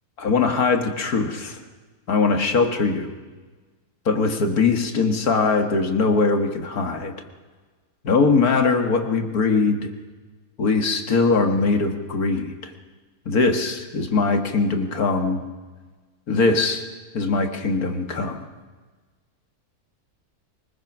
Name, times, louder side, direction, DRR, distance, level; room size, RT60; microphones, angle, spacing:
voice 1, 0.2-1.6 2.1-3.1 4.1-7.2 8.0-9.9 10.6-12.7 13.3-15.4 16.3-16.8 17.1-18.5, left 4 dB, 80° left, 5 dB, 2.3 m, -21 dB
23.5 x 21.0 x 6.1 m, 1.3 s
omnidirectional pair, 1.6 m